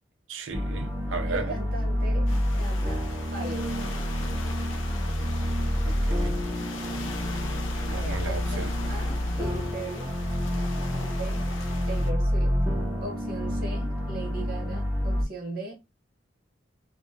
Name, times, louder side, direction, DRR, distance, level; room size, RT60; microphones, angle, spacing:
voice 1, 0.3-1.6 5.8-6.4 7.8-8.7, right 4 dB, 75° right, 0.5 m, -35 dB
sound 1, 0.5-15.2, equal, 10° right, 0.6 m, -28 dB
voice 2, 1.3-3.1 3.3-3.9 7.9-10.1 10.9-11.5 11.9-12.6 13.0-15.8, right 2 dB, 45° right, 1.0 m, -39 dB
sound 2, 2.3-12.1, left 3 dB, 75° left, 0.5 m, -41 dB
2.6 x 2.2 x 2.5 m
head